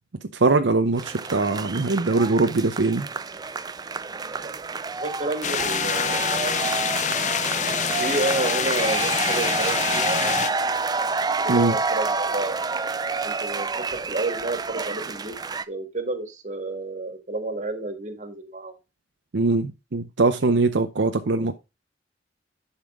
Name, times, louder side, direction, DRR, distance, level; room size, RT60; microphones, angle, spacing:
voice 1, 0.3-3.1 11.5-11.8 19.3-21.5, right 3 dB, 75° right, 0.7 m, -22 dB
sound 1, 1.0-15.6, right 4 dB, 20° right, 0.4 m, -28 dB
voice 2, 5.0-6.3 7.9-10.6 11.4-12.5 13.2-15.4 15.7-18.8 21.4-21.5, right 2 dB, 40° right, 1.8 m, -30 dB
sound 2, 5.4-10.5, left 7 dB, 40° left, 0.6 m, -26 dB
10.5 x 5.7 x 3.6 m
head